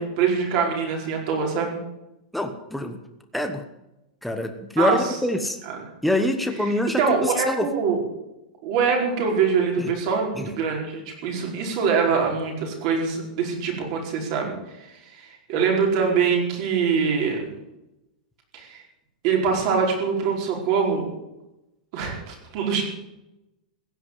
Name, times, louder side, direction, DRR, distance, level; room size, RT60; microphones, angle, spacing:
voice 1, 0.0-1.8 4.8-5.0 5.7-5.8 7.0-8.0 8.6-14.5 14.8-17.5 18.5-18.8 19.2-21.1 21.9-22.8, right 6 dB, 40° right, 1 dB, 5.0 m, -24 dB
voice 2, 2.3-3.0 3.3-3.6 4.2-5.6 6.0-7.7 9.8-9.9 10.3-10.5, left 1 dB, ahead, 5 dB, 1.1 m, -25 dB
16.0 x 9.5 x 9.6 m, 0.92 s
supercardioid pair, 170°, 4 cm